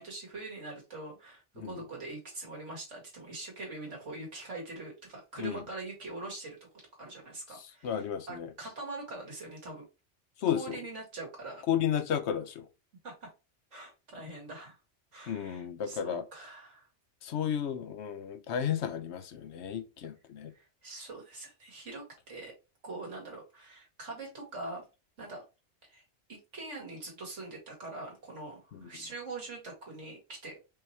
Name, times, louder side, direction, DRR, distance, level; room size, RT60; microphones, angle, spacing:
voice 1, 0.0-6.6 7.0-9.8 10.5-11.6 13.0-13.3 13.7-14.8 15.1-16.9 20.5-22.5 22.8-24.8 25.2-25.4 25.9-26.0 26.3-30.6, right 2 dB, 80° right, 2.4 m, -43 dB
voice 2, 7.8-8.5 10.4-10.8 11.7-12.7 15.3-16.2 17.2-20.5, left 9 dB, 70° left, 0.9 m, -33 dB
5.4 x 2.9 x 3.3 m
omnidirectional pair, 1.2 m